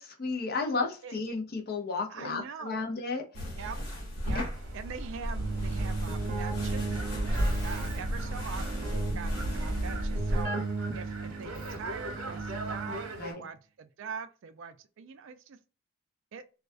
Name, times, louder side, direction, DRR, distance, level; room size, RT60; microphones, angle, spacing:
voice 1, 0.0-3.6 4.3-4.4 12.9-13.4, left 4 dB, 45° left, 0.5 m, -34 dB
voice 2, 2.1-2.9 3.6-3.8 4.2-4.5 4.7-7.0 7.6-10.6 10.9-15.6 16.3-16.4, right 6 dB, 65° right, 0.3 m, -43 dB
sound 1, 3.3-10.4, equal, 85° left, 1.1 m, -33 dB
sound 2, 4.5-13.3, right 2 dB, 80° right, 0.8 m, -44 dB
Keyboard (musical), 5.4-13.2, right 3 dB, 40° right, 0.7 m, -36 dB
2.3 x 2.2 x 2.5 m
head